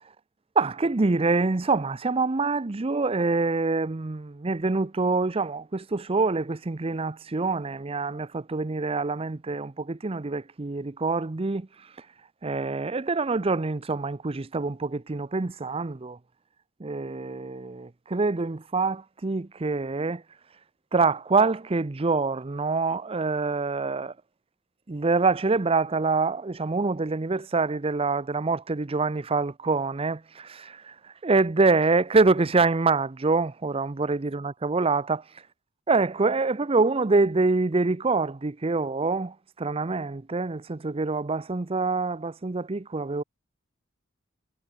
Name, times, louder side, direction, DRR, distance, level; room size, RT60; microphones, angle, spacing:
voice 1, 0.6-11.7 12.4-16.2 16.8-20.2 20.9-24.1 24.9-30.9 31.2-35.2 35.9-43.2, right 3 dB, 30° right, 0.6 m, -25 dB
head